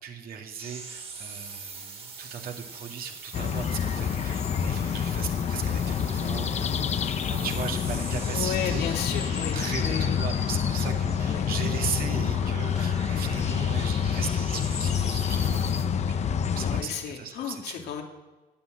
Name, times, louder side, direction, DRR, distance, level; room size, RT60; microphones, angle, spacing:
voice 1, 0.0-8.8 9.5-16.2 16.5-17.9, right 7 dB, 60° right, 3 dB, 2.1 m, -37 dB
sound 1, 0.6-15.9, right 4 dB, 35° right, 2.3 m, -43 dB
sound 2, 3.3-16.8, left 7 dB, 40° left, 0.8 m, -27 dB
voice 2, 8.3-10.2 11.2-11.5 13.1-13.3 16.6-18.0, left 8 dB, 80° left, 2 dB, 2.6 m, -33 dB
17.0 x 8.8 x 7.7 m, 1.2 s
cardioid pair, 110°, 17 cm